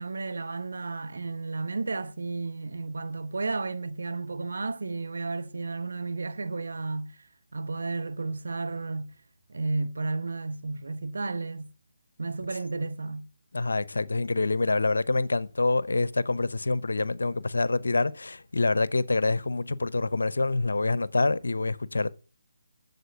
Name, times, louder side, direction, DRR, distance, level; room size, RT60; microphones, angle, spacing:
voice 1, 0.0-7.1 7.5-9.1 9.5-11.7 12.2-13.3, right 3 dB, 75° right, 1.1 m, -32 dB
voice 2, 13.5-22.1, left 3 dB, 80° left, 0.7 m, -26 dB
8.0 x 7.2 x 8.0 m
figure-of-eight pair, 155°, 0 cm